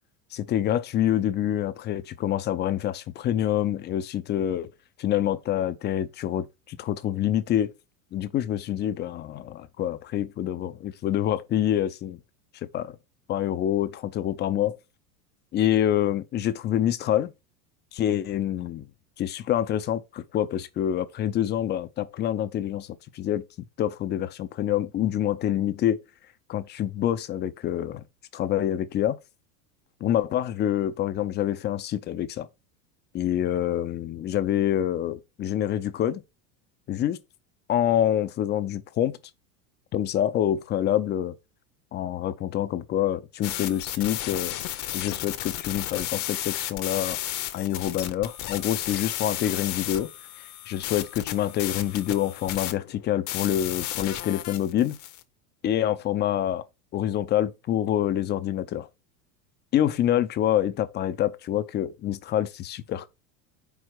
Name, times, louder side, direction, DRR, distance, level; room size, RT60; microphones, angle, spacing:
voice 1, 0.3-4.7 5.0-7.7 8.1-12.2 12.5-13.0 13.3-14.8 15.5-17.3 17.9-18.9 19.2-23.4 23.8-26.0 26.5-28.0 28.3-29.2 30.0-32.5 33.1-36.2 36.9-37.2 37.7-39.2 39.9-41.3 41.9-44.6 44.9-47.2 47.5-50.1 50.7-55.0 55.6-56.6 56.9-58.9 59.7-63.1, left 11 dB, 25° left, 0.5 m, -26 dB
sound 1, 43.4-55.2, left 13 dB, 40° left, 0.9 m, -33 dB
4.8 x 4.3 x 6.0 m
supercardioid pair, 135°, 44 cm